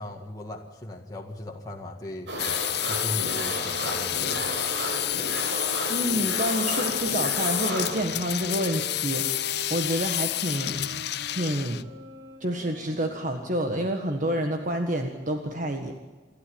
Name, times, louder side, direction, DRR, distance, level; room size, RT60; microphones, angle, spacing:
voice 1, 0.0-2.3 2.9-4.6, left 1 dB, 20° left, -1 dB, 1.9 m, -38 dB
sound 1, 2.3-8.0, right 1 dB, 85° right, 6.8 m, -33 dB
sound 2, 2.4-11.8, left 14 dB, 65° left, 0.7 m, -29 dB
sound 3, 3.4-10.1 10.6-13.5, right 1 dB, 65° right, 4.9 m, -45 dB
voice 2, 5.9-10.7 11.3-11.8 12.4-15.9, right 1 dB, 45° right, 4 dB, 1.6 m, -28 dB
28.5 x 12.0 x 8.7 m, 1.3 s
head